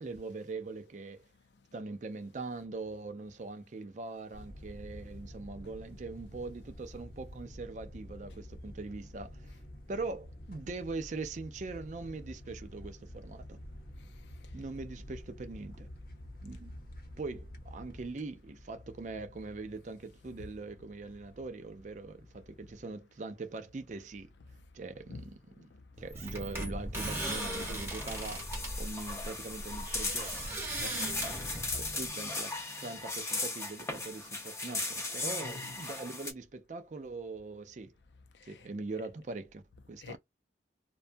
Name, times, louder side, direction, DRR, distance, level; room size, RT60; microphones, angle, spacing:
voice 1, 0.0-1.3 1.7-9.5 9.9-13.6 14.5-15.9 16.4-16.8 17.2-24.3 24.7-25.7 26.0-28.5 28.8-30.5 31.8-37.9 38.4-40.2, right 3 dB, 40° right, 0.4 m, -42 dB
sound 1, 4.3-22.8, left 1 dB, 50° left, 0.8 m, -49 dB
sound 2, 26.0-32.1, right 1 dB, 15° right, 0.8 m, -39 dB
sound 3, 26.9-36.3, left 2 dB, 15° left, 0.5 m, -38 dB
voice 2, 30.8-31.8 35.4-35.7 38.5-38.6 40.0-40.2, left 3 dB, 70° left, 0.4 m, -46 dB
2.6 x 2.2 x 2.5 m
head